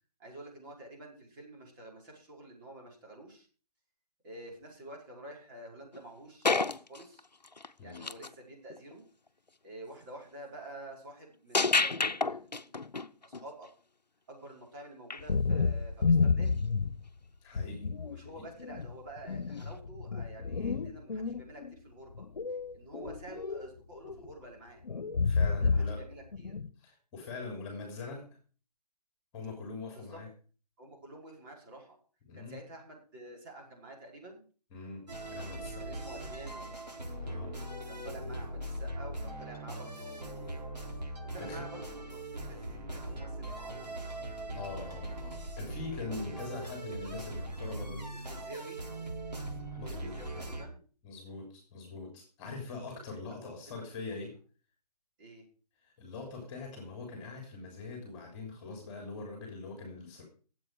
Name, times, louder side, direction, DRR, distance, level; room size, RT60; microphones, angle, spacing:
voice 1, 0.2-3.5 4.2-7.2 7.8-9.1 9.6-13.7 14.3-16.6 18.0-22.3 22.7-24.8 25.6-26.5 29.9-30.2 30.8-32.0 32.3-34.4 35.8-36.7 37.8-40.7 41.2-44.0 48.1-48.9 49.7-50.8 53.4-53.8 55.2-55.4, right 1 dB, 30° right, -1 dB, 5.1 m, -49 dB
sound 1, 5.9-6.0 6.4-8.3 8.7-8.9 11.5-13.5 15.1-15.2 19.6-19.7, left 3 dB, 85° left, 0.9 m, -30 dB
sound 2, 15.2-17.1 17.6-18.2 18.6-21.7 22.2-23.7 24.0-24.3 24.8-26.0 26.3-26.7, left 4 dB, 65° left, 1.2 m, -30 dB
voice 2, 17.4-17.9 18.2-18.4 25.2-26.0 26.8-28.3 29.3-30.3 32.3-32.6 34.7-35.8 37.2-37.5 41.4-41.6 44.5-48.3 49.8-50.4 51.0-54.3 55.8-60.2, left 3 dB, 20° left, 2 dB, 3.2 m, -43 dB
sound 3, 35.1-50.7, right 1 dB, 80° right, 4.3 m, -40 dB
19.0 x 8.1 x 4.8 m, 0.39 s
figure-of-eight pair, 145°, 21 cm